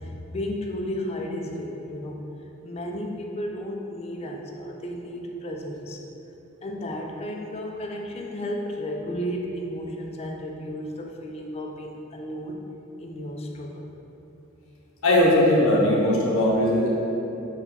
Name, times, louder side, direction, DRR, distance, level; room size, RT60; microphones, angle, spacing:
voice 1, 0.0-2.2 2.6-6.0 6.6-12.6 13.0-13.9, equal, 30° left, 1 dB, 0.3 m, -33 dB
voice 2, 15.0-16.9, left 1 dB, 70° left, -4 dB, 0.7 m, -19 dB
4.0 x 2.2 x 4.0 m, 2.9 s
head